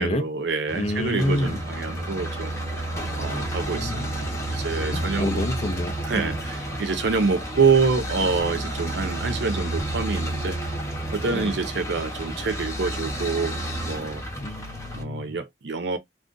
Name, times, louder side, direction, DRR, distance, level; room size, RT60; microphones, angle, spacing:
voice 1, 0.0-2.5 3.2-5.4 6.1-10.6 11.1-13.6 13.8-14.2 14.9-16.0, right 4 dB, 65° right, 0.5 m, -26 dB
voice 2, 0.7-1.6 3.7-4.2 4.5-4.7 4.9-6.3 11.3-11.5 14.4-15.4, left 1 dB, 35° left, 0.5 m, -29 dB
sound 1, 0.7-15.0, right 1 dB, 15° left, 0.9 m, -31 dB
2.4 x 2.4 x 3.7 m
head